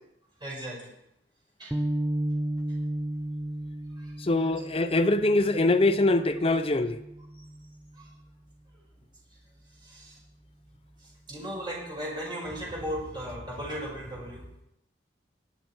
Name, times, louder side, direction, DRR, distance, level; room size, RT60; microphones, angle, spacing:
voice 1, 0.4-0.8 1.6-1.7 4.0-4.1 7.3-7.4 8.0-8.1 9.8-10.2 11.0-14.4, equal, 25° right, 5.6 m, -36 dB
sound 1, 1.7-8.1, right 1 dB, 5° right, 0.6 m, -34 dB
voice 2, 4.2-7.0, left 2 dB, 30° left, 0.6 m, -23 dB
21.5 x 8.1 x 4.5 m
head